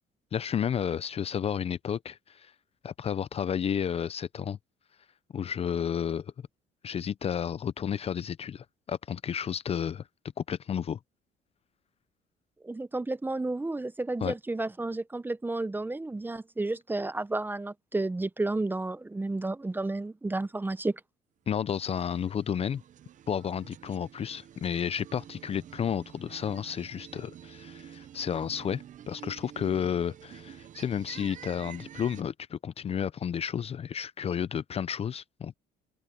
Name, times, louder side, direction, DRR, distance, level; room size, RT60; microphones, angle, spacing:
voice 1, 0.3-2.5 2.8-4.6 5.3-6.3 6.8-10.0 10.5-11.0 14.2-14.3 21.5-22.8 23.3-35.5, left 8 dB, 35° left, 0.5 m, -32 dB
voice 2, 12.6-21.0, right 2 dB, 10° right, 0.7 m, -32 dB
sound 1, 21.7-32.2, right 10 dB, 50° right, 0.8 m, -49 dB
open air
cardioid pair, 110°, 17 cm